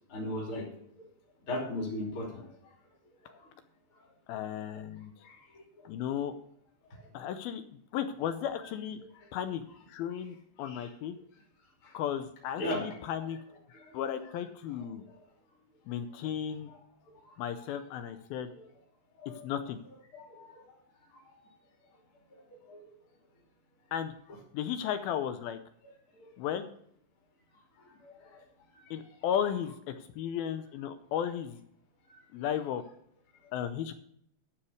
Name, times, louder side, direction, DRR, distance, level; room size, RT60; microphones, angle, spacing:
voice 1, 0.1-0.7 1.5-2.4 3.2-3.3 5.2-5.4 6.9-7.0 10.7-10.9 11.8-11.9 12.6-12.8 13.7-14.0 19.2-19.4 20.1-20.6 22.7-22.8 26.2-26.3 28.0-28.4 28.7-28.8 32.1-32.2, left 1 dB, 35° left, -2 dB, 3.4 m, -37 dB
voice 2, 4.3-5.1 5.9-6.4 7.1-7.6 7.9-9.0 9.3-9.6 9.9-11.2 11.9-13.4 13.9-15.0 15.9-16.7 17.4-18.5 19.3-19.8 23.9-24.1 24.5-25.6 26.4-26.7 28.9-31.6 32.3-32.8 33.5-33.9, left 9 dB, 80° left, 10 dB, 2.3 m, -34 dB
13.0 x 5.9 x 6.4 m, 0.67 s
omnidirectional pair, 4.8 m